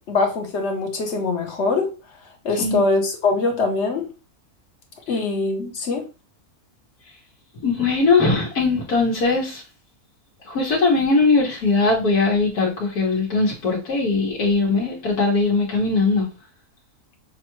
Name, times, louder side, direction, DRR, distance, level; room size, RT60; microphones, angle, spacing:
voice 1, 0.1-1.9 2.4-4.1 5.1-6.0, left 3 dB, 55° left, 1.1 m, -22 dB
voice 2, 7.6-9.6 10.5-16.3, left 3 dB, 85° left, 1.6 m, -20 dB
6.1 x 2.2 x 3.0 m
omnidirectional pair, 1.6 m